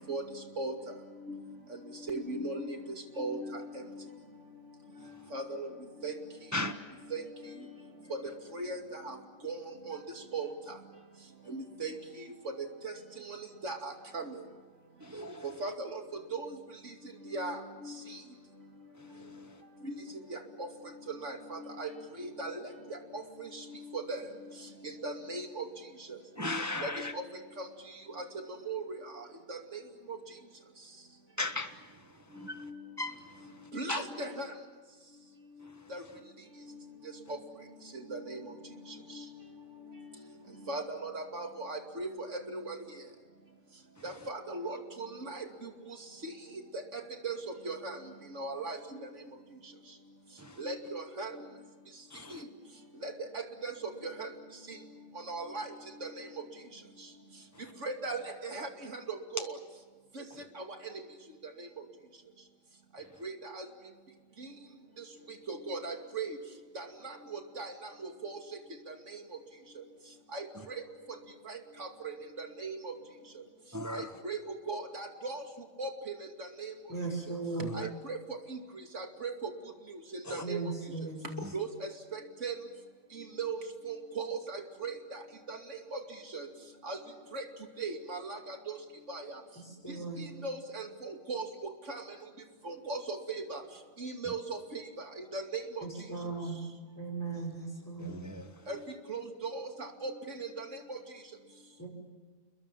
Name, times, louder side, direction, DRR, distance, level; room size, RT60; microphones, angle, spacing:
voice 1, 2.1-2.8 3.2-3.8 5.3-5.7 6.0-6.1 7.1-7.2 8.1-8.2 8.5-9.2 9.4-9.6 9.9-10.0 10.3-10.5 11.5-11.9 12.4-12.9 13.3-13.4 13.6-14.4 15.4-16.5 17.3-17.9 19.8-19.9 20.3-20.7 21.1-21.9 22.2-22.6 22.9-23.6 23.9-24.3 25.0-25.6 26.1-26.2 26.8-27.2 27.6-27.7 28.2-28.3 28.7-28.8 29.5-29.6 30.1-30.2 32.6-32.7 33.7-34.5 35.9-36.0 37.3-37.4 38.1-38.4 40.7-42.7 44.0-45.7 46.9-47.4 47.6-48.0 48.3-48.8 50.6-51.4 52.3-52.4 53.0-53.7 54.0-54.3 55.3-55.7 56.0-56.3 57.8-59.6 60.2-60.3 60.6-60.7 61.6-61.7 63.2-63.6 65.5-66.4 66.7-67.7 68.0-68.4 68.9-69.0 70.3-70.5 71.8-72.9 73.9-75.4 75.8-76.7 77.7-78.2 78.5-78.6 78.9-79.3 80.3-80.6 81.5-82.5 83.4-85.2 85.5-86.0 86.3-86.5 86.8-87.0 87.3-87.4 87.8-88.6 89.1-89.2 90.2-92.0 92.6-93.6 94.0-94.8 95.2-95.8 98.7-98.8 99.1-100.1 100.4-101.0, right 3 dB, 70° right, 4 dB, 2.9 m, -38 dB
voice 2, 15.1-15.4 26.4-27.1 31.4-31.7 32.4-32.6 33.0-33.1 33.9-34.0 52.1-52.3 73.7-74.1 77.6-77.9 80.3-80.4 98.0-98.5, left 2 dB, 15° right, 7 dB, 1.0 m, -35 dB
voice 3, 76.9-77.8 80.4-81.5 89.6-90.3 95.8-96.6 96.9-98.1 101.8-101.9, right 3 dB, 15° left, -5 dB, 6.0 m, -37 dB
29.5 x 22.0 x 7.4 m, 1.4 s
omnidirectional pair, 1.3 m